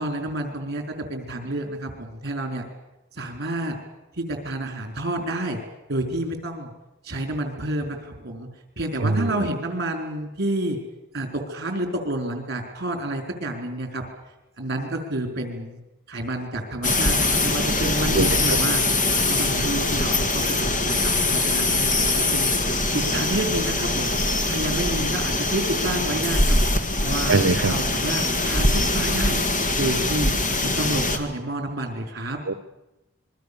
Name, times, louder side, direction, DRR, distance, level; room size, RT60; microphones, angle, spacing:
voice 1, 0.0-2.6 3.1-3.8 4.2-5.6 5.9-6.7 7.0-8.5 8.8-10.8 11.1-14.0 14.6-15.8 16.1-18.8 19.3-22.5 22.9-24.2 24.5-26.6 27.0-29.4 29.8-30.3 30.6-32.4, right 1 dB, 50° right, 5 dB, 4.7 m, -29 dB
sound 1, 16.8-31.2, left 2 dB, 40° left, 2.1 m, -23 dB
voice 2, 18.2-18.6 27.3-27.7 32.5-32.6, right 3 dB, 65° right, 12 dB, 1.0 m, -22 dB
26.5 x 22.0 x 7.1 m, 0.97 s
head